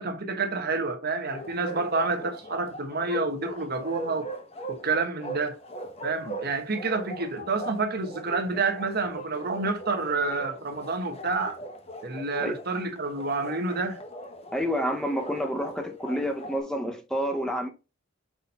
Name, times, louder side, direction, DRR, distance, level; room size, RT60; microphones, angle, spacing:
voice 1, 0.0-4.3 4.7-5.6 6.0-11.6 12.0-14.0, right 3 dB, 50° right, 1.2 m, -29 dB
Bark, 1.3-16.6, right 1 dB, 30° left, 1.1 m, -40 dB
voice 2, 14.5-17.7, equal, 5° left, 1.0 m, -29 dB
6.2 x 4.2 x 5.5 m
head